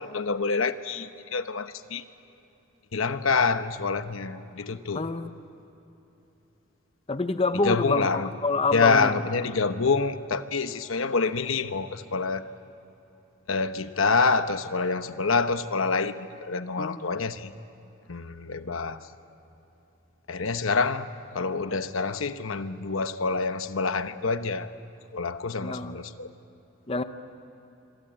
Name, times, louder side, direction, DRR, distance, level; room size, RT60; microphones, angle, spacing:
voice 1, 0.0-2.0 2.9-5.1 7.5-8.3 8.7-12.5 13.5-17.5 18.1-19.1 20.3-21.1 21.3-24.7 25.1-26.3, left 4 dB, 85° left, 10 dB, 1.0 m, -27 dB
voice 2, 4.9-5.3 7.1-9.1 16.8-17.1 25.6-26.0 26.9-27.0, left 3 dB, 30° left, 10 dB, 0.9 m, -27 dB
27.0 x 23.5 x 9.0 m, 3.0 s
head